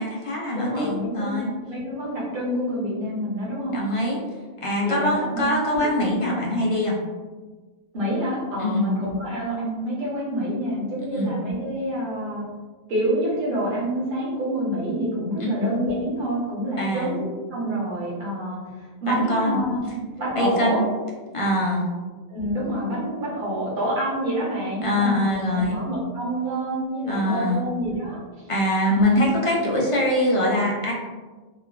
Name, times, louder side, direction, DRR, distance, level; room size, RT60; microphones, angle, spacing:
voice 1, 0.0-1.5 3.7-4.2 4.6-7.0 8.6-8.8 11.1-11.3 15.4-15.6 16.8-17.1 19.1-19.6 20.4-20.9 21.3-21.9 24.8-25.8 27.1-27.6 28.5-30.9, left 1 dB, 55° left, -2 dB, 0.3 m, -23 dB
voice 2, 0.5-1.4 1.7-3.7 4.8-5.4 5.7-5.9 7.9-12.4 12.9-20.8 22.3-28.5 28.9-29.0, equal, 55° right, -7 dB, 1.1 m, -27 dB
3.1 x 2.2 x 2.3 m, 1.3 s
omnidirectional pair, 1.1 m